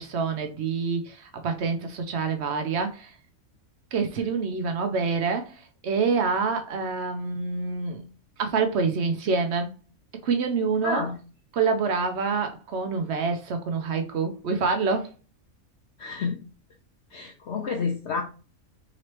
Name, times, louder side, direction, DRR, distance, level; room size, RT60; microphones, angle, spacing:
voice 1, 0.0-3.1 3.9-8.1 8.4-9.7 10.2-11.0 11.5-15.1, right 5 dB, 60° right, 0.8 m, -26 dB
voice 2, 10.8-11.1 16.0-16.4 17.1-18.2, left 5 dB, 60° left, 0.9 m, -29 dB
4.0 x 3.1 x 2.9 m
omnidirectional pair, 1.5 m